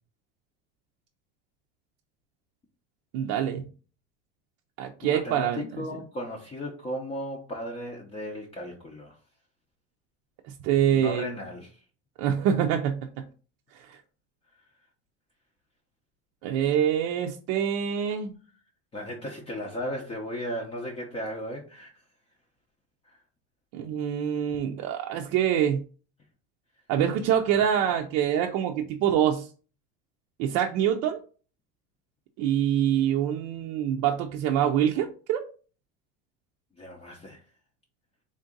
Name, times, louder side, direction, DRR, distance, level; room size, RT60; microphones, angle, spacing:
voice 1, 3.1-3.6 4.8-5.6 10.6-11.4 12.2-13.0 13.7-14.0 16.4-18.3 23.7-25.8 26.9-29.5 30.4-31.2 32.4-35.4, right 9 dB, 60° right, 0.5 m, -25 dB
voice 2, 5.0-9.2 10.9-11.8 18.9-21.9 23.1-23.2 36.7-37.4, equal, 20° left, 0.6 m, -36 dB
3.6 x 2.6 x 3.8 m
supercardioid pair, 130°, 29 cm